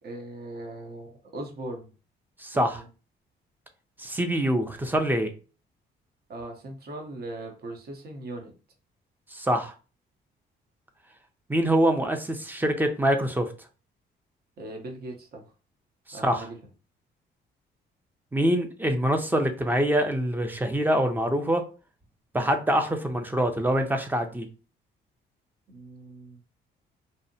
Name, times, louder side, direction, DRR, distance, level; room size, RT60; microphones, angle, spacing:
voice 1, 0.0-1.9 2.5-2.9 6.3-8.5 14.6-15.5 16.1-16.6 25.7-26.4, right 2 dB, 55° right, 3 dB, 0.8 m, -39 dB
voice 2, 2.4-2.8 4.0-5.3 9.3-9.7 11.5-13.5 16.1-16.5 18.3-21.6 22.3-24.5, right 1 dB, 10° right, 6 dB, 0.5 m, -25 dB
2.7 x 2.0 x 2.7 m, 0.34 s
cardioid pair, 90°, 20 cm